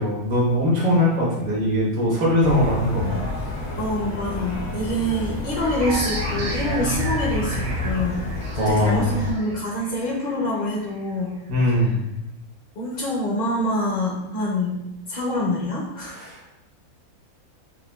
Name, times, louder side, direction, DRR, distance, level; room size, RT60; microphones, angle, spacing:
voice 1, 0.0-3.2 8.6-9.1 11.5-11.9 16.1-16.4, left 1 dB, 75° right, -5 dB, 1.6 m, -21 dB
sound 1, 2.4-9.3, left 2 dB, 90° left, 1.5 m, -30 dB
voice 2, 3.8-8.2 8.5-11.4 11.8-11.9 12.8-14.8 15.1-16.3, left 1 dB, 50° left, -3 dB, 0.6 m, -26 dB
sound 2, 5.8-11.1, right 1 dB, 55° right, 0.8 m, -31 dB
6.5 x 2.2 x 2.2 m, 0.93 s
omnidirectional pair, 1.5 m